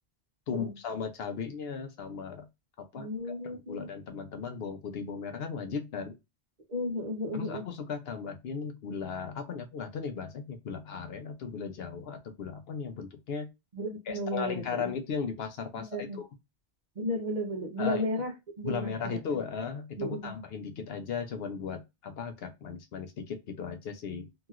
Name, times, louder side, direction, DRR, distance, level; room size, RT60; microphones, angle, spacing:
voice 1, 0.5-2.5 2.8-6.2 7.3-13.5 14.1-16.3 17.8-18.0 18.6-24.3, left 6 dB, 70° left, 0.8 m, -36 dB
voice 2, 2.9-3.9 6.7-7.7 13.7-14.9 15.8-16.2 17.0-18.3 18.6-19.2 20.0-20.3, left 1 dB, 45° right, 0.9 m, -34 dB
2.9 x 2.8 x 2.4 m
omnidirectional pair, 1.1 m